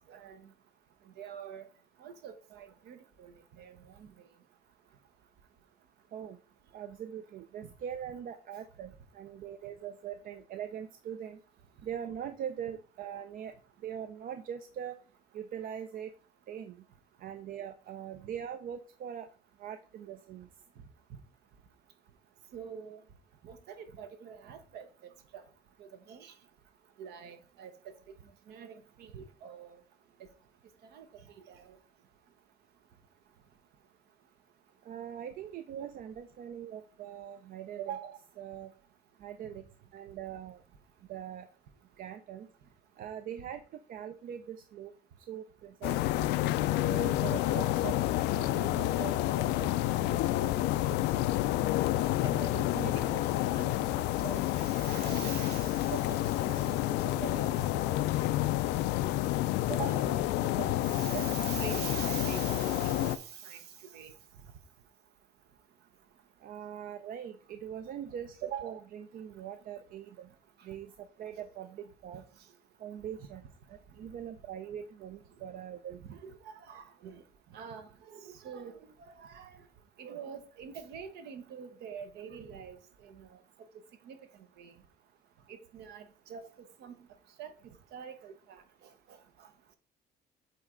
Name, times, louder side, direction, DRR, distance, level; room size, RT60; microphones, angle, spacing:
voice 1, 0.1-0.5 1.2-1.7 2.0-4.1 22.5-23.0 23.4-24.9 25.3-25.4 25.8-26.3 27.0-27.9 28.5-29.8 30.9-31.1 31.5-31.8 46.0-46.3 52.2-56.8 57.2-58.3 59.1-59.2 59.9-63.6 63.9-64.1 71.3-71.5 76.0-77.2 77.5-79.6 80.0-82.8 83.0-83.4 84.0-84.2 84.6-84.7 85.5-87.0 87.4-89.5, right 8 dB, 75° right, 1.0 m, -45 dB
voice 2, 6.7-11.4 11.8-13.5 13.8-15.0 15.3-16.1 16.5-16.8 17.2-19.3 19.6-20.5 34.9-38.7 39.2-39.6 39.9-40.6 41.1-41.5 42.0-42.5 43.0-43.6 43.9-44.9 45.3-46.3 46.9-50.5 59.7-60.1 66.4-70.3 70.6-72.2 72.8-73.4 74.0-76.0, right 9 dB, 55° right, 0.5 m, -42 dB
sound 1, 45.8-63.2, left 15 dB, 90° left, 0.4 m, -29 dB
8.3 x 3.2 x 3.8 m
cardioid pair, 110°, 17 cm